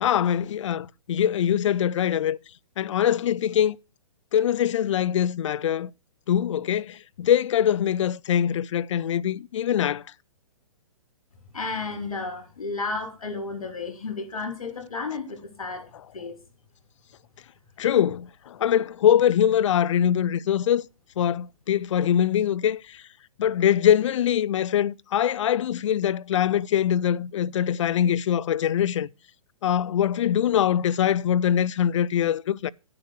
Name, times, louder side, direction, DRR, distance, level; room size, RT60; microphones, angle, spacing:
voice 1, 0.0-2.4 2.8-3.8 4.3-5.9 6.3-10.0 17.8-20.9 21.2-23.0 23.4-29.1 29.6-32.7, left 10 dB, 60° left, 0.5 m, -23 dB
voice 2, 11.5-16.4, left 3 dB, 80° left, 3.2 m, -33 dB
9.9 x 6.8 x 6.4 m
hypercardioid pair, 130°, 18 cm